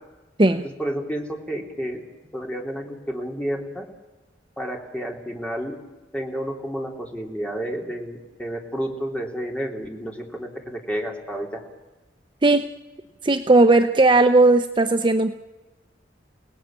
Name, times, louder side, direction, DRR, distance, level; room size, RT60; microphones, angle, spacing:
voice 1, 0.8-2.0 2.3-3.8 4.6-5.8 6.1-11.5, equal, 5° left, 0 dB, 3.4 m, -30 dB
voice 2, 13.2-15.4, right 2 dB, 30° right, 7 dB, 0.8 m, -17 dB
29.5 x 18.5 x 8.9 m, 1.2 s
head